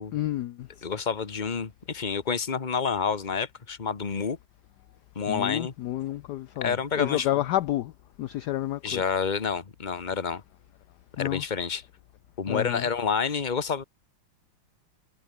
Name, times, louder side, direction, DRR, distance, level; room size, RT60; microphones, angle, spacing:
voice 1, 0.1-0.7 5.3-7.9 8.2-9.0 11.2-11.4 12.5-12.9, left 14 dB, 70° left, 1.0 m, -29 dB
voice 2, 0.8-4.4 5.1-5.7 6.6-7.4 8.8-10.4 11.2-11.8 12.4-13.8, left 6 dB, 25° left, 1.4 m, -29 dB
omnidirectional pair, 2.2 m